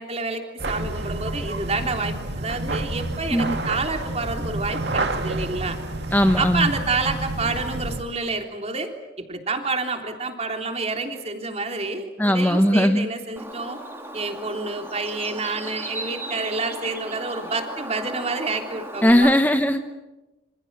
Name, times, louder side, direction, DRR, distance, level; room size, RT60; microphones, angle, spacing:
voice 1, 0.0-5.8 6.4-8.9 9.3-13.8 14.1-19.3, right 3 dB, 35° right, 4 dB, 3.5 m, -28 dB
sound 1, 0.6-8.0, right 2 dB, 60° right, 2.4 m, -29 dB
voice 2, 6.1-6.7 12.2-13.1 19.0-19.8, equal, 10° left, 7 dB, 1.1 m, -18 dB
Bird, 13.4-19.1, right 1 dB, 10° right, 3.8 m, -36 dB
28.0 x 27.0 x 7.6 m, 1.1 s
head